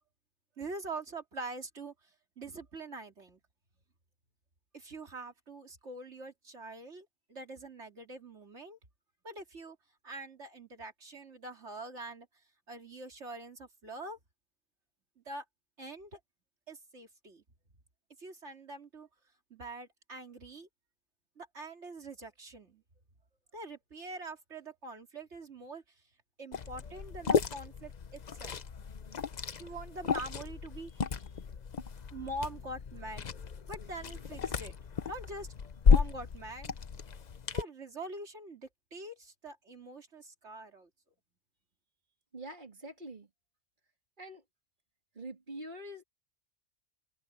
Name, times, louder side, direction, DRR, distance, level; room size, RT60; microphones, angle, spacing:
voice 1, 0.6-1.9 2.4-3.4 4.7-8.8 9.2-9.8 10.0-12.3 12.7-14.2 15.2-15.4 15.8-16.2 16.7-17.4 18.2-19.1 19.5-20.7 21.4-22.8 23.5-25.8 26.4-28.6 29.6-31.3 32.1-33.2 33.7-34.7 35.1-35.5 35.8-36.7 37.5-40.9, right 2 dB, 65° right, 3.1 m, -44 dB
Liquid, 26.5-37.6, left 6 dB, 40° left, 0.8 m, -32 dB
voice 2, 42.3-43.3 44.2-44.4 45.1-46.0, right 1 dB, 40° right, 3.1 m, -44 dB
omnidirectional pair, 1.3 m